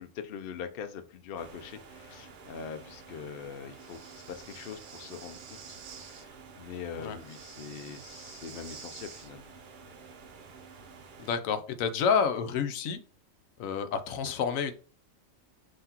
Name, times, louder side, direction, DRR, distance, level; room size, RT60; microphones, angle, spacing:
voice 1, 0.0-9.5, left 7 dB, 55° left, 8 dB, 0.7 m, -43 dB
sound 1, 1.4-11.3, right 5 dB, 50° right, 0.6 m, -51 dB
Breathing, 3.8-6.3 7.2-9.3, right 7 dB, 70° right, 1.1 m, -49 dB
voice 2, 11.2-13.0 13.6-14.7, left 6 dB, 90° left, 9 dB, 1.0 m, -29 dB
5.7 x 2.8 x 2.8 m, 0.41 s
omnidirectional pair, 1.4 m